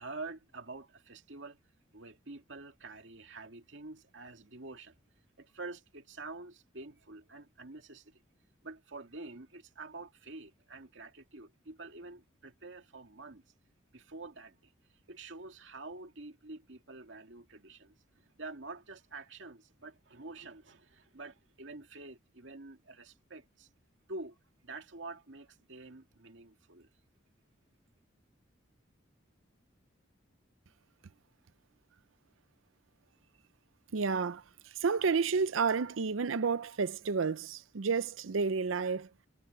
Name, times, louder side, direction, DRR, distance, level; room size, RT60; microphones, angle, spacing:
voice 1, 0.0-1.6 1.9-5.0 5.4-8.2 8.6-13.4 13.9-23.7 24.1-26.9, right 3 dB, 70° right, 2.3 m, -47 dB
voice 2, 33.9-39.1, right 5 dB, 85° right, 0.6 m, -31 dB
head